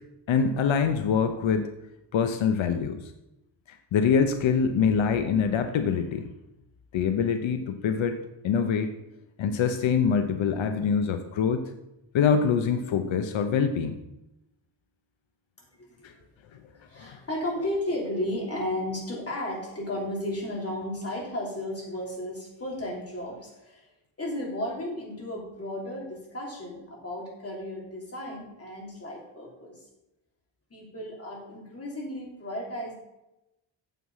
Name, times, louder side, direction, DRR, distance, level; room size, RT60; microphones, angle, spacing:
voice 1, 0.3-1.7 2.1-3.0 3.9-6.3 6.9-8.2 8.4-8.9 9.4-11.6 12.1-14.0 16.0-16.1 17.0-17.2, left 6 dB, 85° left, 7 dB, 0.8 m, -24 dB
voice 2, 15.6-16.1 16.7-23.9 24.2-29.8 30.7-32.9, left 1 dB, 30° left, -3 dB, 3.3 m, -34 dB
9.2 x 7.5 x 5.6 m, 0.91 s
wide cardioid pair, 155°, 45 cm